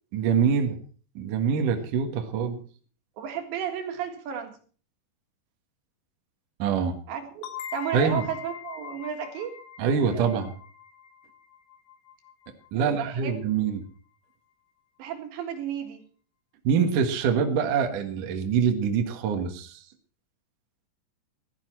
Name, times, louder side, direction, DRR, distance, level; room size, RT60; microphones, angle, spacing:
voice 1, 0.1-0.8 1.2-2.6 6.6-7.0 7.9-8.2 9.8-10.5 12.7-13.8 16.6-19.8, right 6 dB, 60° right, 4 dB, 2.5 m, -25 dB
voice 2, 3.2-4.6 7.1-7.5 7.7-9.6 10.1-10.3 12.7-13.3 15.0-16.1, right 8 dB, 75° right, 5 dB, 4.0 m, -33 dB
sound 1, 7.4-12.9, left 9 dB, 80° left, 3.5 m, -42 dB
16.0 x 13.0 x 4.5 m, 0.41 s
omnidirectional pair, 5.3 m